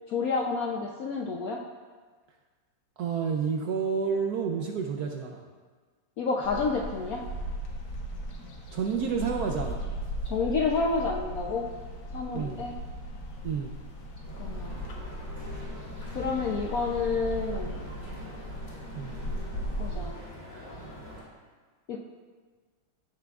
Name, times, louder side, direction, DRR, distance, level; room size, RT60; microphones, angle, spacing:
voice 1, 0.1-1.6 6.2-7.2 10.2-11.7 12.1-12.7 14.4-14.8 16.1-17.8 19.8-20.1 21.9-22.0, left 4 dB, 75° left, 0 dB, 0.8 m, -29 dB
voice 2, 3.0-5.4 8.7-9.8 12.3-12.6 13.4-13.7 18.9-19.1, right 6 dB, 75° right, 2 dB, 0.9 m, -30 dB
sound 1, 6.4-20.1, equal, 60° left, 1.5 m, -37 dB
sound 2, 14.2-21.2, equal, 35° left, 3.0 m, -44 dB
15.5 x 5.9 x 2.4 m, 1.5 s
omnidirectional pair, 2.2 m